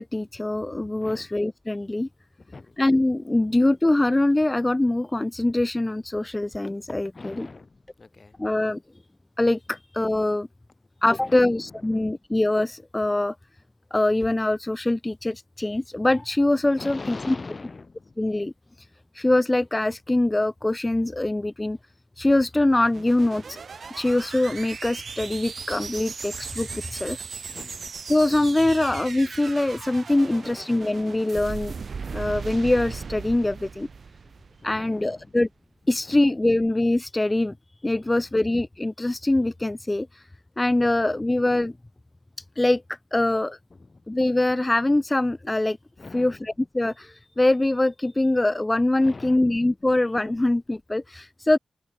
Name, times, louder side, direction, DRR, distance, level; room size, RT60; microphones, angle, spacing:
voice 1, 0.0-2.1 2.8-7.5 8.4-8.8 9.4-10.5 11.0-13.3 13.9-17.3 18.2-18.5 19.1-21.8 22.2-23.6 24.0-27.2 28.1-31.7 32.1-33.9 34.6-35.5 35.9-37.5 37.8-40.2 40.6-41.7 42.6-43.6 44.1-45.8 46.1-51.6, left 2 dB, 25° left, 0.3 m, -23 dB
voice 2, 1.0-1.3 2.4-2.8 3.4-3.5 7.1-8.5 9.7-9.8 11.0-12.2 16.6-18.2 27.5-27.9 30.2-30.7 34.6-35.4 35.8-36.5 38.0-38.3 40.8-41.3 43.7-44.2 46.0-46.5 49.0-49.7, left 3 dB, 50° left, 4.6 m, -43 dB
sound 1, 22.6-35.0, right 5 dB, 65° right, 1.6 m, -38 dB
open air
supercardioid pair, 40°, 0 cm